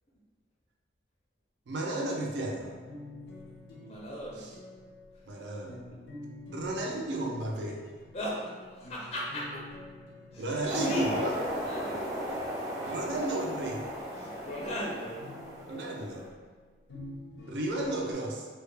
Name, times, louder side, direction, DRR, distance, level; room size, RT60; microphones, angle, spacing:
voice 1, 1.7-2.7 5.3-5.8 6.5-7.8 10.4-11.3 12.9-13.8 15.7-16.3 17.5-18.5, right 1 dB, 75° right, -1 dB, 0.4 m, -33 dB
sound 1, 2.6-11.6 15.2-18.1, left 1 dB, 85° left, 0.6 m, -49 dB
voice 2, 3.3-4.5 5.1-5.4 5.9-6.0 8.1-9.7 10.3-11.3 11.6-12.3 14.1-15.2, equal, 35° left, -5 dB, 0.4 m, -38 dB
sound 2, 10.7-16.2, equal, 20° right, 0.5 m, -36 dB
2.2 x 2.1 x 3.2 m, 1.5 s
head